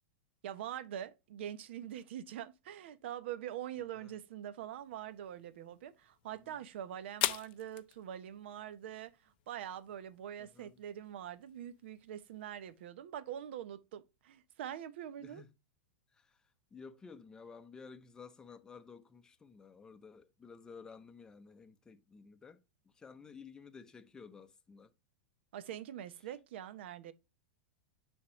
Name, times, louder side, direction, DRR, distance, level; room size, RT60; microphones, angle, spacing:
voice 1, 0.4-15.4 25.5-27.1, right 10 dB, 65° right, 0.9 m, -44 dB
sound 1, 4.7-12.9, left 15 dB, 55° left, 0.5 m, -44 dB
voice 2, 6.3-6.6 10.4-10.8 15.2-15.5 16.1-16.4 16.7-22.6 22.9-24.9 26.1-26.3, left 5 dB, 10° left, 0.6 m, -53 dB
9.5 x 3.6 x 3.0 m
supercardioid pair, 150°, 6 cm